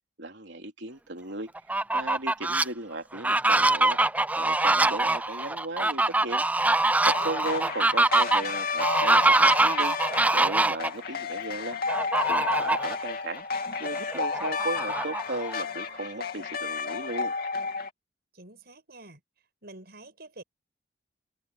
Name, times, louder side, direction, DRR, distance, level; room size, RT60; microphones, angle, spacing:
voice 1, 0.2-1.5 1.9-4.0 4.4-6.4 7.0-9.9 10.3-13.4 13.8-17.3, right 2 dB, 80° right, 3.5 m, -36 dB
Fowl, 1.6-2.6 3.1-10.9 11.9-12.9 13.4-13.5 13.8-15.6, right 2 dB, 10° right, 0.5 m, -24 dB
sound 1, 7.1-17.9, left 5 dB, 60° left, 2.7 m, -32 dB
voice 2, 18.3-19.2 19.6-20.4, right 2 dB, 60° right, 7.4 m, -47 dB
head